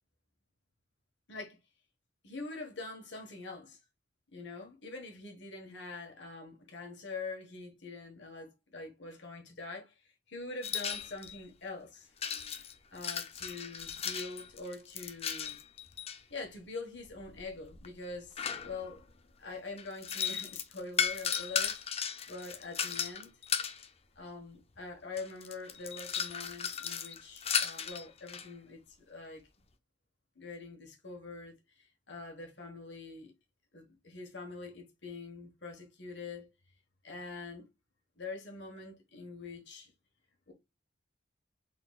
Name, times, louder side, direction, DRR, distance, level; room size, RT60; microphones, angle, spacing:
voice 1, 2.2-3.8 4.3-12.1 12.9-15.6 16.3-19.0 19.4-21.8 22.3-23.3 24.2-29.4 30.3-33.3 33.7-36.5 37.0-37.7 38.2-39.9 40.5-40.6, left 3 dB, 70° left, 1.5 m, -44 dB
sound 1, 10.6-11.4 12.2-16.2 17.1-19.0 19.8-23.9 24.8-24.9 25.2-28.5, left 8 dB, 35° left, 0.5 m, -36 dB
4.0 x 4.0 x 2.4 m
head